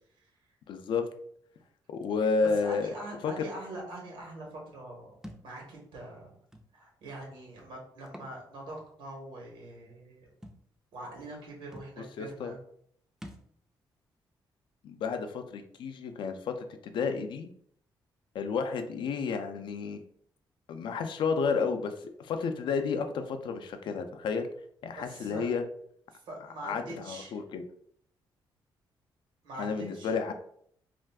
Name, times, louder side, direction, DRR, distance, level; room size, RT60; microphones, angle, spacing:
voice 1, 0.7-1.1 1.9-2.9 3.2-3.3 12.2-12.5 14.8-17.5 18.3-20.0 20.7-24.5 24.8-25.6 26.6-27.6 29.6-30.3, left 5 dB, 75° left, 7 dB, 0.4 m, -31 dB
voice 2, 2.5-5.1 5.4-6.3 6.7-10.3 10.9-12.6 24.9-25.5 26.3-27.4 29.4-30.1, right 1 dB, 90° right, -1 dB, 1.1 m, -43 dB
Thump thud, 5.2-5.5 6.5-6.7 8.0-8.4 8.8-8.9 10.4-10.6 11.4-11.5 11.7-11.9 13.2-13.5, equal, 5° right, 0.3 m, -46 dB
2.5 x 2.3 x 3.4 m, 0.65 s
cardioid pair, 105°, 8 cm